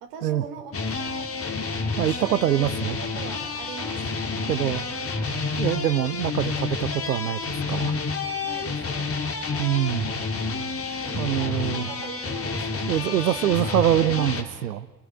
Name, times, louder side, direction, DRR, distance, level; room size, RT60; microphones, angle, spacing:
voice 1, 0.0-1.3 2.0-2.4 2.9-4.1 8.4-9.1 11.0-13.4, right 6 dB, 60° right, 6 dB, 3.6 m, -41 dB
sound 1, 0.7-14.4, left 4 dB, 30° left, 3.2 m, -29 dB
voice 2, 2.0-3.0 4.5-4.8 5.6-8.0 9.6-10.1 11.2-11.9 12.9-14.9, right 11 dB, 80° right, 16 dB, 0.8 m, -24 dB
29.0 x 20.0 x 9.2 m, 1.3 s
figure-of-eight pair, 55°, 48 cm